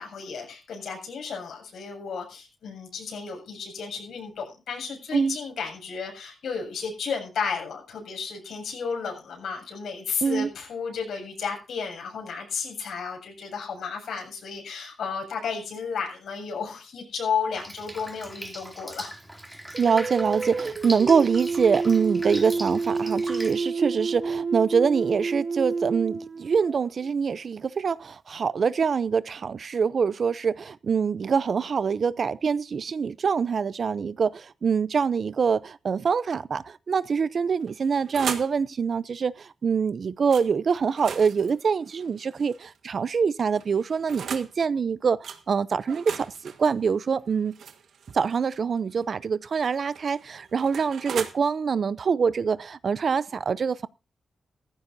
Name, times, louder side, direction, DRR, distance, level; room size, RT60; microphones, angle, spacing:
voice 1, 0.0-19.1, left 6 dB, 90° left, 7.3 m, -33 dB
Drip, 17.5-23.5, right 1 dB, 5° right, 2.9 m, -40 dB
sound 1, 19.7-27.1, right 4 dB, 35° right, 1.1 m, -29 dB
voice 2, 19.8-46.3 46.6-47.6 48.1-53.9, right 6 dB, 55° right, 0.6 m, -25 dB
sound 2, 37.6-38.6 40.3-40.5 40.9-42.8 43.5-44.5 45.2-45.4 45.9-48.6 49.7-51.3, right 7 dB, 85° right, 1.6 m, -38 dB
17.5 x 14.5 x 2.7 m
wide cardioid pair, 120°, 0 cm